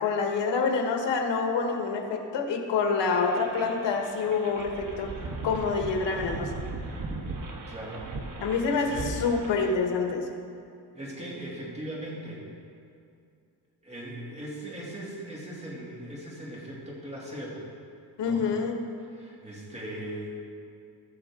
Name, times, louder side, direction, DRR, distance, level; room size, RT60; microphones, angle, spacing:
voice 1, 0.0-5.1 5.4-6.6 8.4-10.3 18.2-18.8, left 4 dB, 85° left, 3 dB, 1.3 m, -27 dB
sound 1, 3.1-9.7, right 3 dB, 50° right, 1.2 m, -38 dB
voice 2, 7.7-8.2 8.7-9.2 10.9-12.4 13.8-17.7 18.2-18.5 19.1-20.4, right 1 dB, 15° right, -5 dB, 2.6 m, -39 dB
17.5 x 6.4 x 3.7 m, 2.4 s
cardioid pair, 120°, 42 cm